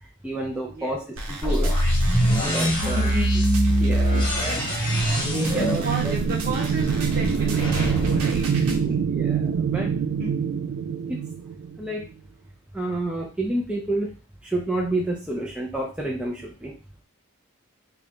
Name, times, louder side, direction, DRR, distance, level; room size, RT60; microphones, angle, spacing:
voice 1, 0.2-1.0 1.3-1.8 2.4-3.1 3.7-4.6 5.2-6.1 8.8-9.9 11.1-11.2 11.8-12.1 12.7-14.1 14.4-16.7, right 1 dB, 5° right, -2 dB, 0.5 m, -29 dB
sound 1, 1.2-8.8, right 2 dB, 85° right, 0.8 m, -37 dB
sound 2, 1.4-9.3, equal, 25° left, 1.3 m, -23 dB
voice 2, 2.8-3.4 4.0-4.3 4.9-9.0 10.2-10.3, right 1 dB, 45° right, -1 dB, 1.1 m, -33 dB
sound 3, 4.4-12.0, right 7 dB, 70° right, 0.3 m, -26 dB
3.8 x 2.3 x 3.5 m, 0.36 s
head